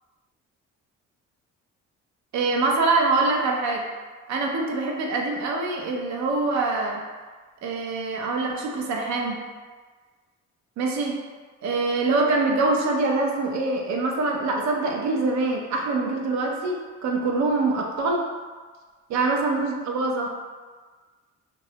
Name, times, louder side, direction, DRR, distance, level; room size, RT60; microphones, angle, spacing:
voice 1, 2.3-3.9 4.3-7.0 7.6-9.4 10.8-11.2 11.6-18.3 19.1-20.3, right 3 dB, 65° right, 0 dB, 0.5 m, -24 dB
2.2 x 2.0 x 2.7 m, 1.4 s
cardioid pair, 90°, 30 cm